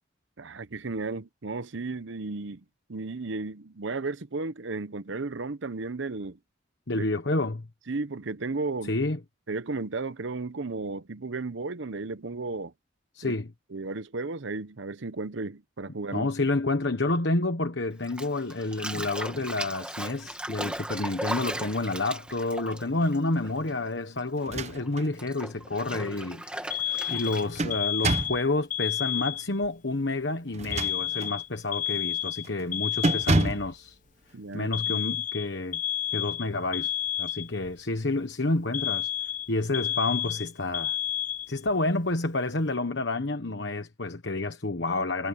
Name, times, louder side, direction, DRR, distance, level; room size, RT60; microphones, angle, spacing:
voice 1, 0.4-6.4 6.9-7.0 7.9-9.0 9.5-12.7 13.2-13.3 13.7-16.3 34.3-35.0, right 3 dB, 70° right, 0.8 m, -34 dB
voice 2, 6.9-7.7 8.8-9.2 13.1-13.5 16.1-34.0 34.5-35.8 36.1-36.9 37.2-39.1 39.5-41.0 41.5-45.3, left 2 dB, 60° left, 1.3 m, -29 dB
Bathtub (filling or washing), 18.0-23.9 24.2-27.7, right 1 dB, 5° right, 2.1 m, -37 dB
sound 1, 24.4-25.1 25.6-25.7 27.1-28.5 30.5-31.4 31.9-32.1 32.4-32.7 33.0-33.7, right 2 dB, 35° right, 0.8 m, -28 dB
Alarm, 26.7-29.7 30.7-33.7 34.7-37.7 38.7-41.7, left 10 dB, 40° left, 0.5 m, -31 dB
head